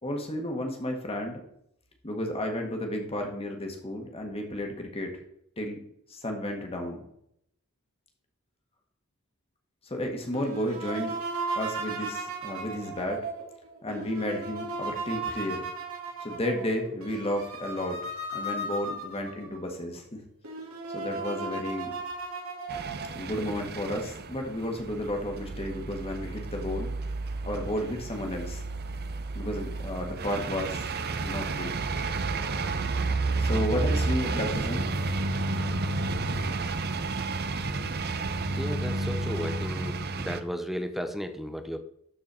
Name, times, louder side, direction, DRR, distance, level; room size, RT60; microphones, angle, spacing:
voice 1, 0.0-1.4 2.0-5.1 5.6-5.8 6.1-7.0 9.8-11.1 11.5-13.3 13.8-15.6 16.2-18.0 18.3-20.2 20.9-21.9 23.1-26.9 27.4-28.6 29.3-30.9 31.2-31.7 33.4-34.8, left 1 dB, 25° left, 2 dB, 1.7 m, -32 dB
sound 1, 10.3-19.6 20.1-20.2 20.4-23.2, right 3 dB, 80° right, 2.9 m, -36 dB
sound 2, 22.7-40.4, right 3 dB, 45° right, 0.6 m, -31 dB
voice 2, 38.6-41.8, equal, ahead, 7 dB, 0.7 m, -34 dB
12.5 x 4.6 x 4.4 m, 0.73 s
head